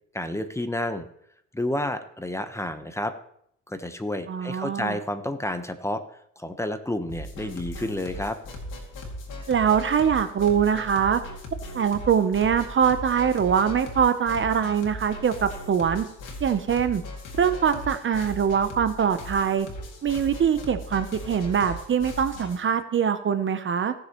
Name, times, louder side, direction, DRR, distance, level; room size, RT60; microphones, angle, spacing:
voice 1, 0.1-1.1 1.5-3.1 3.7-6.0 6.4-8.4, left 1 dB, 10° left, 9 dB, 0.9 m, -30 dB
voice 2, 4.3-5.0 9.5-11.2 11.7-16.1 16.4-17.0 17.4-19.7 20.0-23.9, right 7 dB, 40° right, 11 dB, 0.7 m, -23 dB
sound 1, 7.1-22.6, left 1 dB, 85° left, 2.2 m, -38 dB
17.5 x 6.6 x 3.0 m, 0.71 s
cardioid pair, 90°, 30 cm